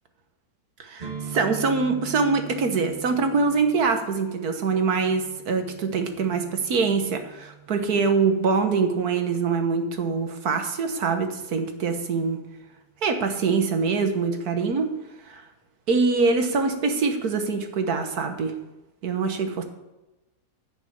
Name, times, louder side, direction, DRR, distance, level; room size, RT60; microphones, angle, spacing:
voice 1, 0.8-12.4 13.0-14.9 15.3-15.4 15.9-18.5 19.0-19.6, right 4 dB, 70° right, 6 dB, 1.8 m, -24 dB
sound 1, 1.0-8.8, right 7 dB, 25° right, 1.6 m, -42 dB
11.0 x 6.3 x 8.5 m, 1.0 s
omnidirectional pair, 1.7 m